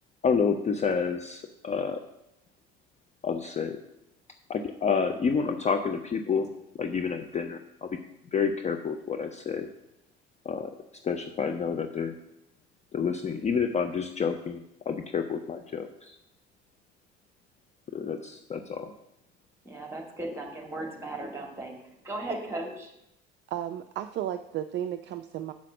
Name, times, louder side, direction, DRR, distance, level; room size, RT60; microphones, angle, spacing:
voice 1, 0.2-2.0 3.2-3.8 4.5-6.5 6.7-8.0 8.3-9.7 10.4-10.7 11.0-12.1 12.9-16.2 17.9-18.9, left 6 dB, 20° left, 6 dB, 0.5 m, -29 dB
voice 2, 19.6-22.9, right 2 dB, 10° right, 2 dB, 1.9 m, -37 dB
voice 3, 23.5-25.5, right 11 dB, 35° right, 9 dB, 0.4 m, -33 dB
7.3 x 5.7 x 6.0 m, 0.86 s
figure-of-eight pair, 60°, 31 cm